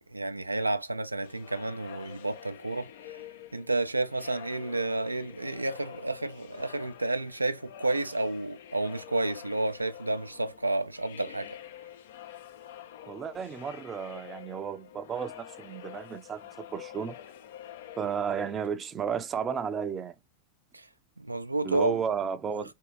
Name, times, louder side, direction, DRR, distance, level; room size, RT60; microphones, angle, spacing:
voice 1, 0.1-2.9 3.5-11.5 20.7-20.9 21.2-22.0 22.6-22.7, right 2 dB, 85° right, 0.4 m, -30 dB
sound 1, 1.2-19.1, left 10 dB, 55° left, 0.5 m, -47 dB
voice 2, 13.1-17.2 18.0-20.1 21.6-22.7, right 7 dB, 25° right, 0.5 m, -33 dB
3.6 x 2.7 x 3.2 m
figure-of-eight pair, 90°, 0 cm